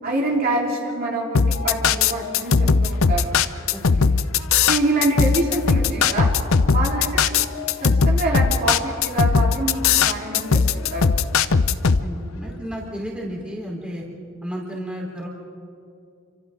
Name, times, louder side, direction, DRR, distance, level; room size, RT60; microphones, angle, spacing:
voice 1, 0.0-3.4 4.7-6.3 6.7-7.1 7.8-11.2, right 2 dB, 45° right, -4 dB, 4.1 m, -25 dB
sound 1, 1.3-12.0, left 5 dB, 70° left, 0.7 m, -18 dB
voice 2, 3.7-4.1 6.7-6.8 11.7-14.0 14.4-15.3, equal, 5° right, -3 dB, 4.0 m, -33 dB
29.5 x 26.0 x 3.8 m, 2.5 s
head